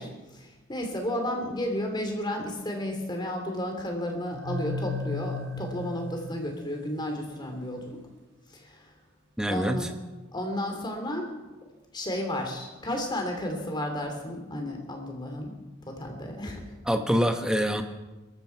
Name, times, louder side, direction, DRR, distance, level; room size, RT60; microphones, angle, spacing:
voice 1, 0.0-8.0 8.5-8.8 9.5-9.9 10.3-11.3 11.9-15.6 15.8-16.6, left 1 dB, 20° left, 3 dB, 2.8 m, -32 dB
sound 1, 4.3-7.2, left 2 dB, 60° right, 1.9 m, -35 dB
voice 2, 9.4-9.9 16.9-17.8, equal, 5° right, 6 dB, 1.1 m, -25 dB
21.0 x 14.0 x 4.6 m, 1.2 s
head